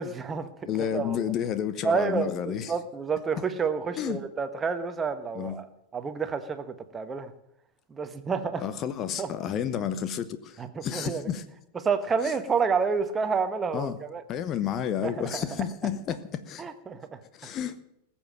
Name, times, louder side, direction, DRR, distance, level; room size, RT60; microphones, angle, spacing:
voice 1, 0.0-0.5 0.9-1.3 1.8-5.7 5.9-7.3 7.9-8.6 9.2-9.3 10.6-11.3 11.8-14.2 15.0-15.4 16.6-17.2, right 5 dB, 20° right, 1.2 m, -29 dB
voice 2, 0.6-2.7 4.0-4.2 5.3-5.6 8.6-11.4 12.2-12.3 13.7-14.0 14.3-16.7 17.3-17.8, left 9 dB, 30° left, 0.9 m, -31 dB
20.5 x 7.3 x 7.6 m
figure-of-eight pair, 90°, 0 cm